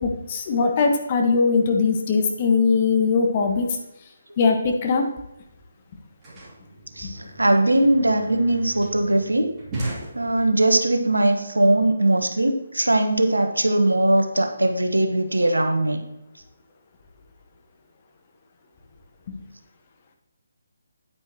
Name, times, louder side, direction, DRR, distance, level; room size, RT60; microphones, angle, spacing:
voice 1, 0.0-3.8 4.4-5.1 7.0-7.1 19.3-19.4, left 4 dB, 30° left, 3 dB, 1.4 m, -21 dB
sound 1, 5.6-10.8, right 1 dB, 20° right, 3.0 m, -37 dB
voice 2, 7.0-9.5 10.1-16.0, right 1 dB, 80° right, 6 dB, 1.3 m, -20 dB
9.5 x 9.2 x 3.0 m, 0.90 s
figure-of-eight pair, 145°, 0 cm